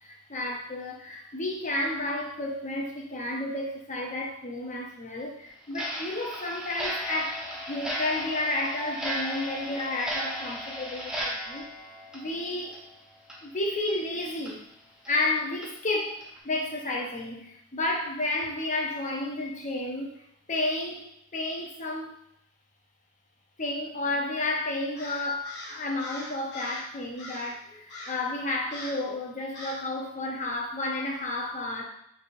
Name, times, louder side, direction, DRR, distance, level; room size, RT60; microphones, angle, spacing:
voice 1, 0.0-11.7 12.1-12.8 13.4-14.6 15.1-20.1 20.5-22.1 23.6-31.8, left 2 dB, 35° left, 0 dB, 0.8 m, -31 dB
Clock, 5.7-12.9 13.2-13.4 13.9-14.0 14.5-14.6 15.0-15.1 15.6-15.7 16.2-16.4, equal, 5° right, 0.8 m, -35 dB
Crow, 25.0-26.9 27.2-27.6 27.9-28.3 28.7-29.1 29.5-29.9, left 1 dB, 55° left, 1.1 m, -41 dB
3.4 x 3.4 x 4.2 m, 0.73 s
head